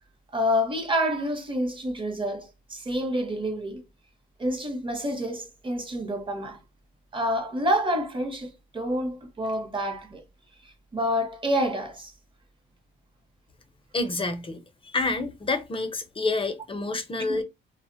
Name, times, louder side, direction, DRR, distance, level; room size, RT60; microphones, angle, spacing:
voice 1, 0.3-3.8 4.4-6.6 7.1-10.2 10.9-12.1 17.3-17.4, equal, 25° right, 0.8 m, -28 dB
voice 2, 13.9-17.4, left 3 dB, 25° left, 0.5 m, -28 dB
2.0 x 2.0 x 3.7 m
cardioid pair, 90°, 20 cm